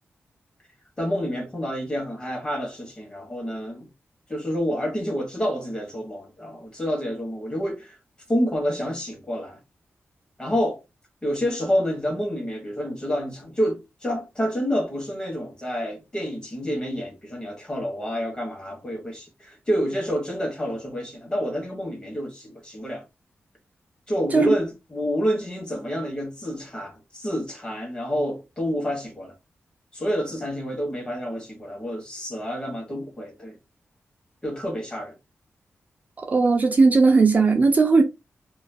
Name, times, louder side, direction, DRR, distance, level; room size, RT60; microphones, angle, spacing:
voice 1, 1.0-3.9 4.3-8.0 8.3-9.6 10.4-10.8 11.2-23.0 24.1-29.3 29.9-33.6 34.4-35.1, equal, 20° left, 0.8 m, -28 dB
voice 2, 36.2-38.0, right 4 dB, 35° right, 0.4 m, -17 dB
2.5 x 2.3 x 2.5 m
wide cardioid pair, 175°, 5 cm